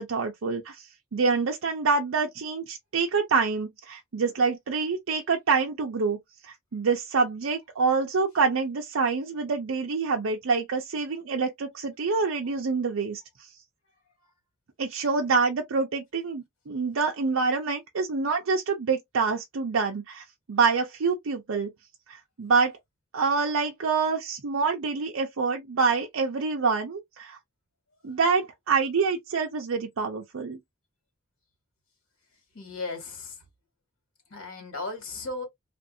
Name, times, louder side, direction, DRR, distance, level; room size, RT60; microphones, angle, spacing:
voice 1, 0.0-6.2 6.4-13.2 14.8-21.7 22.1-22.8 23.1-27.4 28.0-30.6, right 4 dB, 70° right, 0.5 m, -26 dB
voice 2, 32.5-33.4 34.3-35.4, left 3 dB, 80° left, 2.0 m, -35 dB
2.9 x 2.5 x 2.6 m
head